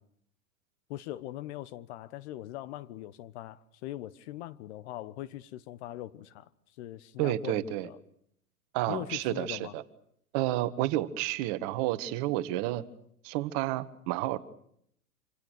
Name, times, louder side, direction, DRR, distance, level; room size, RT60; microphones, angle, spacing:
voice 1, 0.9-6.5 6.8-8.0 8.9-9.7, left 14 dB, 45° left, 1.2 m, -41 dB
voice 2, 7.2-7.9 8.7-9.8 10.3-12.8 13.2-14.4, right 15 dB, 40° right, 1.8 m, -30 dB
27.5 x 26.0 x 6.6 m
hypercardioid pair, 105°, 46 cm